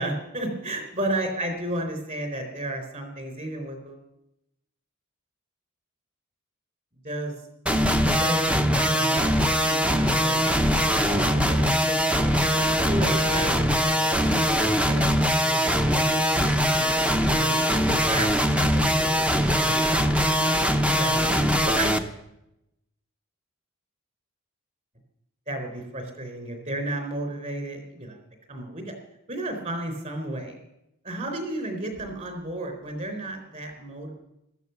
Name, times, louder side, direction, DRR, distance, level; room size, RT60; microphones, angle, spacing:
voice 1, 0.0-4.0 7.0-7.3 7.7-8.4 8.7-10.4 10.9-12.3 12.8-17.5 17.9-20.1 20.6-21.3 21.6-22.0 25.5-28.2 28.5-28.9 29.3-30.6 31.0-34.1, right 1 dB, 35° right, 5 dB, 4.1 m, -33 dB
sound 1, 7.7-22.0, equal, 5° right, 0.8 m, -22 dB
14.5 x 13.5 x 7.0 m, 0.84 s
head